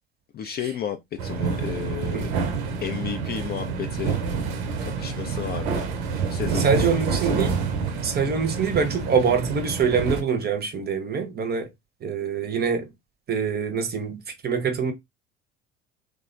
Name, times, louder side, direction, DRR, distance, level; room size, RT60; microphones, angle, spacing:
voice 1, 0.3-2.3 2.8-4.2 4.8-5.9 6.3-7.6, left 9 dB, 30° left, 0.4 m, -33 dB
sound 1, 1.2-10.2, right 5 dB, 65° right, 0.7 m, -28 dB
voice 2, 6.5-7.6 8.0-11.7 12.0-12.9 13.3-14.9, right 6 dB, 30° right, 0.7 m, -25 dB
3.3 x 2.1 x 2.4 m
figure-of-eight pair, 60°, 35 cm